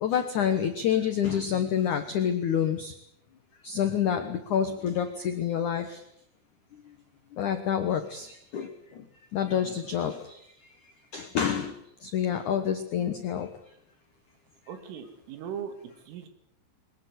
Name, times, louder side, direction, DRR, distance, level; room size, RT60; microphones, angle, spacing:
voice 1, 0.0-2.9 3.6-6.0 7.4-8.3 8.5-8.7 9.3-10.2 11.1-11.7 12.0-13.5, left 8 dB, 80° left, 8 dB, 1.7 m, -27 dB
voice 2, 14.7-16.3, right 8 dB, 85° right, 8 dB, 4.9 m, -39 dB
22.5 x 20.0 x 8.2 m, 0.74 s
omnidirectional pair, 5.6 m